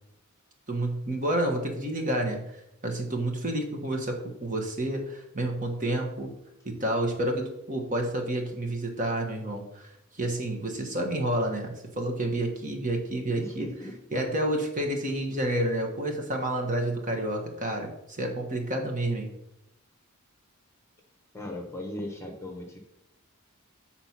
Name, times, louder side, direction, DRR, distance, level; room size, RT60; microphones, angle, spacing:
voice 1, 0.7-2.4 2.8-6.3 6.6-13.7 14.1-19.3, right 1 dB, 35° right, 2 dB, 1.2 m, -29 dB
voice 2, 13.4-14.0 21.3-22.8, left 1 dB, 10° left, 1 dB, 1.1 m, -37 dB
7.9 x 4.2 x 5.9 m, 0.84 s
head